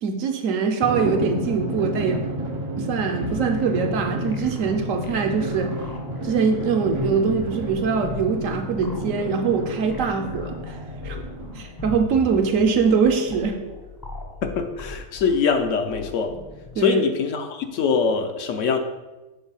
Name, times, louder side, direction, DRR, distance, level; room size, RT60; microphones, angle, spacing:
voice 1, 0.0-2.3 2.8-5.8 6.2-10.8 11.0-11.2 11.5-13.6 16.7-17.0, right 5 dB, 70° right, 6 dB, 1.0 m, -23 dB
Drum, 0.8-11.9, right 1 dB, 50° right, 0.3 m, -31 dB
sound 1, 3.2-16.8, left 3 dB, 30° left, 0.4 m, -39 dB
voice 2, 14.4-16.3 16.8-18.8, left 5 dB, 70° left, 6 dB, 0.9 m, -23 dB
7.2 x 3.6 x 5.6 m, 1.1 s
omnidirectional pair, 1.5 m